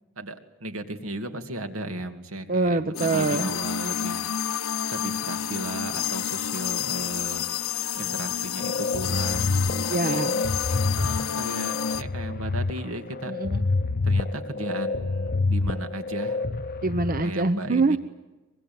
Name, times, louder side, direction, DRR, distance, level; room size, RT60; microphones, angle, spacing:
voice 1, 0.2-4.3 4.9-7.4 7.9-10.2 11.0-13.3 14.0-16.4 17.2-18.0, right 1 dB, 75° right, 6 dB, 2.5 m, -35 dB
voice 2, 2.5-3.5 8.1-8.3 9.9-10.4 13.3-13.6 16.8-18.0, right 3 dB, 45° right, 11 dB, 0.8 m, -25 dB
sound 1, 2.9-12.0, left 9 dB, 80° left, 0.8 m, -29 dB
sound 2, 8.6-17.2, left 3 dB, 45° left, 0.8 m, -27 dB
24.5 x 22.0 x 9.5 m, 1.1 s
head